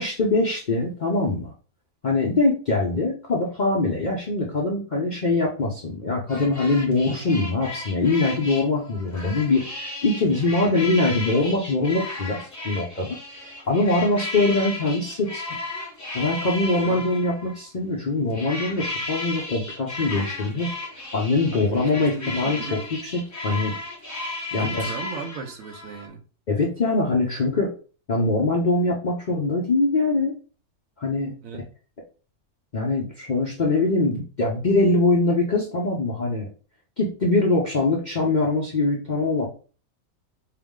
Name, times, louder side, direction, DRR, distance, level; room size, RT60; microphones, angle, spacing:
voice 1, 0.0-1.5 2.0-12.4 12.6-15.5 16.1-20.7 21.1-23.7 24.5-24.9 26.5-27.7 28.1-30.3 31.0-31.3 32.7-36.5 37.0-39.5, left 2 dB, 50° left, 0.5 m, -23 dB
sound 1, 6.3-17.7 18.3-26.1, left 2 dB, 15° left, 0.7 m, -34 dB
voice 2, 21.5-22.9 24.5-26.2 31.4-31.6, right 6 dB, 70° right, 1.0 m, -37 dB
4.7 x 2.0 x 3.6 m
omnidirectional pair, 1.6 m